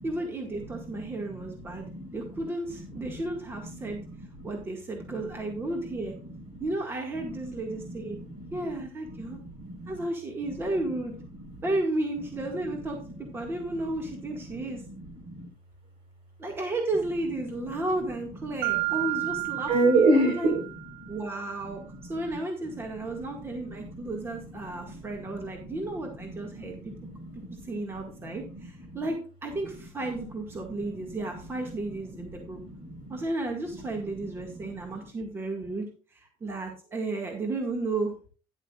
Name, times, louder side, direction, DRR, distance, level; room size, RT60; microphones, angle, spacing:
voice 1, 0.0-1.9 2.1-4.0 4.4-6.1 6.6-8.2 8.5-9.4 9.9-11.1 11.6-13.0 13.3-14.8 16.4-20.5 21.1-21.8 22.1-26.8 27.6-32.6 33.1-38.1, right 2 dB, 25° right, 1 dB, 1.9 m, -33 dB
voice 2, 0.9-2.2 3.0-3.2 3.7-4.5 5.0-5.7 6.2-6.6 7.3-8.7 9.1-10.1 10.5-10.6 11.5-11.6 12.6-12.7 13.0-13.8 14.2-15.5 18.5-19.0 19.2-20.7 21.0-21.2 21.6-22.0 22.8-22.9 23.5-24.2 24.6-29.0 30.6-31.1 31.5-31.7 32.1-33.2 34.2-35.0, right 2 dB, 65° right, 3 dB, 4.4 m, -32 dB
Mallet percussion, 18.6-21.2, right 28 dB, 90° right, 0.4 m, -32 dB
11.5 x 10.5 x 2.4 m, 0.37 s
cardioid pair, 130°, 10 cm